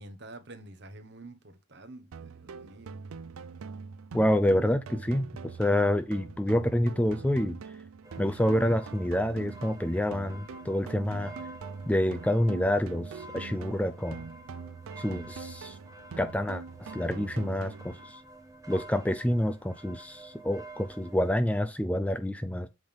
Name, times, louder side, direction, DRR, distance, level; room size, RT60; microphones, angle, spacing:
voice 1, 0.0-3.0, right 2 dB, 50° right, 1.2 m, -48 dB
sound 1, 2.1-18.1, right 5 dB, 75° right, 0.4 m, -43 dB
voice 2, 4.1-7.6 8.2-11.4 11.9-14.2 15.0-15.8 16.2-18.2 18.7-22.7, left 1 dB, 5° left, 0.4 m, -28 dB
sound 2, 8.0-21.3, right 2 dB, 15° right, 1.0 m, -49 dB
7.9 x 3.5 x 5.3 m
head